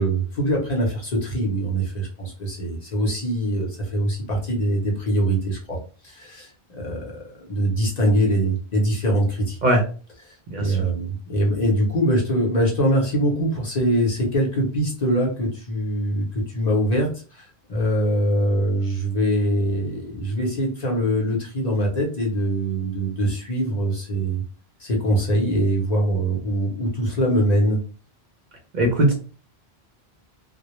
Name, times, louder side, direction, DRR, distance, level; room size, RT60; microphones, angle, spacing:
voice 1, 0.0-5.8 6.0-9.6 10.3-24.4 24.8-27.8, right 1 dB, 45° left, -1 dB, 0.7 m, -23 dB
voice 2, 28.7-29.1, right 1 dB, 55° right, 1 dB, 0.6 m, -19 dB
2.1 x 2.0 x 2.9 m, 0.37 s
omnidirectional pair, 1.1 m